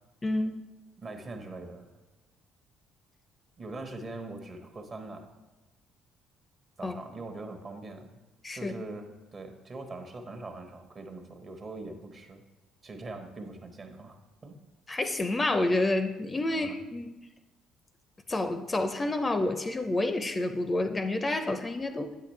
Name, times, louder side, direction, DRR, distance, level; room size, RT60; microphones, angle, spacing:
voice 1, 0.2-0.6 6.8-6.9 8.4-8.7 14.9-17.1 18.3-22.1, left 2 dB, 25° left, 8 dB, 0.5 m, -29 dB
voice 2, 1.0-1.9 3.6-5.3 6.8-8.2 8.5-12.4 12.8-14.2 14.4-14.6 16.5-16.7, right 2 dB, 40° right, 5 dB, 1.1 m, -42 dB
8.6 x 5.8 x 3.2 m, 1.1 s
hypercardioid pair, 55°, 0 cm